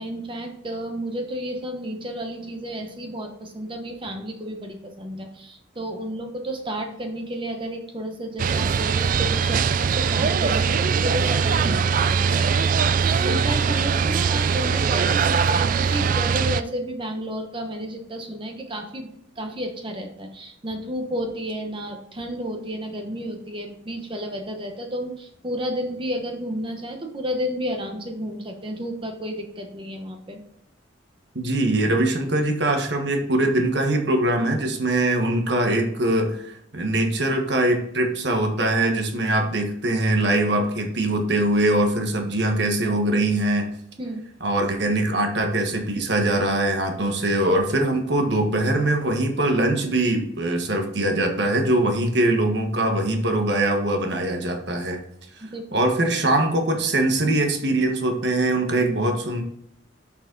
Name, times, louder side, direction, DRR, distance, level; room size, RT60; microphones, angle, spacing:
voice 1, 0.0-12.5 12.9-19.1 19.4-30.4 44.0-44.2 55.4-55.8, equal, 25° right, 3 dB, 1.0 m, -32 dB
sound 1, 8.4-16.6, right 6 dB, 45° right, 0.3 m, -21 dB
voice 2, 31.3-43.6 44.4-55.0 55.7-59.4, right 1 dB, 60° right, 3 dB, 1.4 m, -22 dB
7.0 x 5.7 x 3.9 m, 0.72 s
head